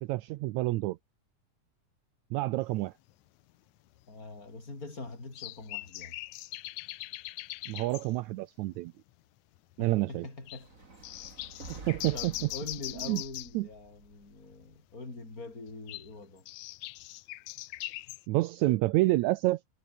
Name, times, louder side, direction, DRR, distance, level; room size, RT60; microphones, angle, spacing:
voice 1, 0.0-1.0 2.3-2.9 7.7-8.9 9.8-10.3 11.7-12.5 13.0-13.2 13.5-13.7 18.3-19.6, right 18 dB, 85° right, 1.6 m, -28 dB
sound 1, 3.1-3.2 4.0-4.1 5.3-8.1 8.7-8.8 9.1-9.2 9.6-9.9 10.5-10.6 11.0-13.6 15.7-18.2, left 18 dB, 80° left, 1.7 m, -41 dB
voice 2, 4.1-6.1 9.8-10.7 12.1-16.5, left 3 dB, 25° left, 5.7 m, -44 dB
sound 2, 10.5-14.7, right 3 dB, 25° right, 3.2 m, -50 dB
omnidirectional pair, 4.0 m